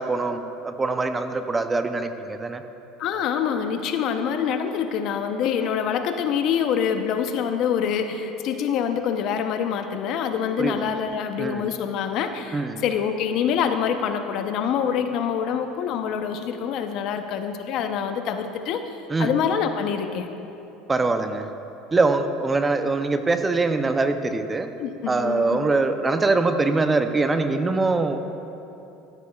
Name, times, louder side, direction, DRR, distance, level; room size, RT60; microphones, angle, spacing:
voice 1, 0.0-2.6 10.6-10.8 11.4-11.7 12.5-12.8 19.1-19.3 20.9-21.5 21.9-24.7 25.1-28.2, right 3 dB, 20° right, 8 dB, 0.6 m, -23 dB
voice 2, 3.0-18.8 19.2-20.3 24.8-25.6, left 7 dB, 60° left, 7 dB, 0.7 m, -25 dB
14.0 x 13.5 x 2.4 m, 3.0 s
supercardioid pair, 100°, 0 cm